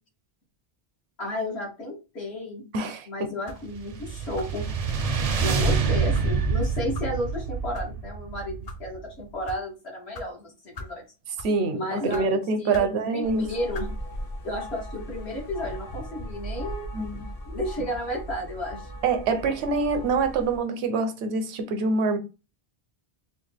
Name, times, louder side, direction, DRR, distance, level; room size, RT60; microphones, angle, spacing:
voice 1, 1.2-2.6 3.1-4.6 5.4-11.0 11.7-12.2 12.6-13.9 14.4-16.9 17.5-18.9, left 1 dB, 80° left, 1.6 m, -33 dB
voice 2, 2.7-3.1 11.4-13.4 16.9-17.2 19.0-22.2, right 4 dB, 85° right, 0.9 m, -25 dB
sound 1, 3.4-3.7 4.4-4.6 5.4-5.5 6.1-6.3 6.9-7.1 7.7-7.9 8.5-8.8 9.4-9.6 10.1-10.3 10.7-11.0 11.3-11.6 12.1-12.3 12.7-12.9 13.7-13.9, left 3 dB, 45° left, 0.6 m, -39 dB
sound 2, 3.7-9.1, right 5 dB, 55° right, 0.4 m, -27 dB
sound 3, 13.2-20.6, equal, 60° left, 1.0 m, -38 dB
3.4 x 2.2 x 3.3 m
omnidirectional pair, 1.1 m